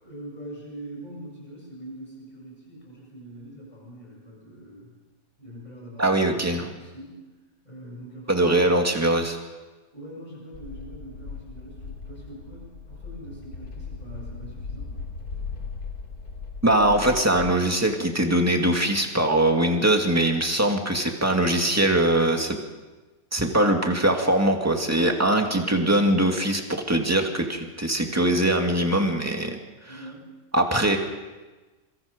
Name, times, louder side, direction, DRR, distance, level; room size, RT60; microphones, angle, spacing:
voice 1, 0.0-5.0 5.4-7.3 7.6-8.7 9.9-15.0 29.9-30.3, right 1 dB, 25° left, -3 dB, 8.0 m, -43 dB
voice 2, 6.0-6.7 8.3-9.4 16.6-22.6 23.3-29.6 30.5-31.0, right 1 dB, 10° right, 2 dB, 2.4 m, -22 dB
sound 1, 10.5-17.5, left 4 dB, 65° left, 3.5 m, -38 dB
26.5 x 24.5 x 5.3 m, 1.2 s
omnidirectional pair, 1.8 m